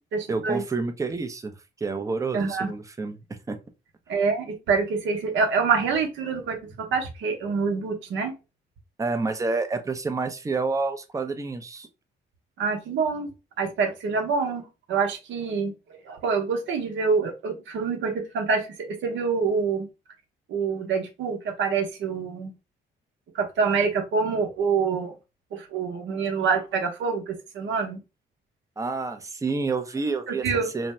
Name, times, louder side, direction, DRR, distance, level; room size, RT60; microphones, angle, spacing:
voice 1, 0.3-3.2 3.5-3.6 9.0-11.9 28.8-30.9, right 3 dB, 15° right, 0.5 m, -29 dB
voice 2, 2.3-2.7 4.1-8.3 12.6-13.3 13.6-14.6 14.9-15.7 16.0-19.9 20.5-22.5 23.3-25.1 25.5-28.0 30.3-30.7, right 5 dB, 75° right, 0.8 m, -26 dB
2.6 x 2.1 x 3.1 m
cardioid pair, 90°, 20 cm